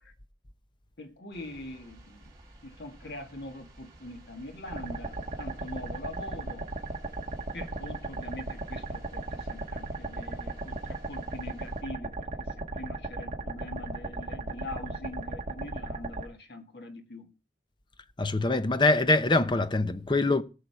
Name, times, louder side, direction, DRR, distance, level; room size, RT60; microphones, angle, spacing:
voice 1, 1.0-2.3 2.6-6.7 7.5-17.3, left 1 dB, 70° left, 2.0 m, -43 dB
sound 1, 1.3-11.8, right 1 dB, 20° right, 4.7 m, -54 dB
sound 2, 4.7-16.2, right 2 dB, 40° right, 1.7 m, -36 dB
voice 2, 18.2-20.4, left 2 dB, 25° left, 0.7 m, -24 dB
17.5 x 6.6 x 4.7 m
head